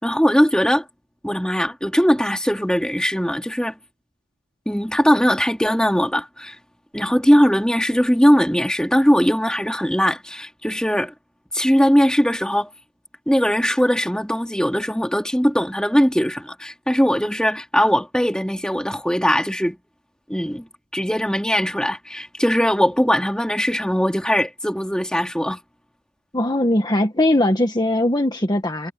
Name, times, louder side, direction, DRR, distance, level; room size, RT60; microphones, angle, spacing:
voice 1, 0.0-0.8 1.2-3.7 4.7-6.6 6.9-11.1 11.5-12.7 13.3-19.8 20.3-20.7 20.9-25.6, equal, 5° left, 3.8 m, -20 dB
voice 2, 26.3-28.9, left 1 dB, 20° left, 1.6 m, -20 dB
head